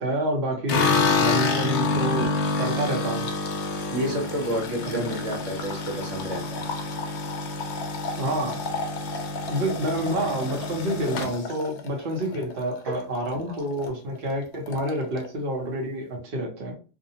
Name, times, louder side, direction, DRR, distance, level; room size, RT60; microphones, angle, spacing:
voice 1, 0.0-2.3 2.6-3.3 4.9-5.1 8.2-8.6 9.5-16.7, right 1 dB, 55° right, -1 dB, 0.9 m, -28 dB
sound 1, 0.7-12.9 13.3-13.9 14.2-14.3 14.5-15.3, left 3 dB, 65° left, 0.8 m, -28 dB
voice 2, 3.9-6.6 10.6-10.7 11.1-11.4 12.8-13.6 14.7-14.8, equal, 75° right, 0 dB, 1.2 m, -31 dB
2.6 x 2.1 x 2.7 m, 0.36 s
omnidirectional pair, 1.3 m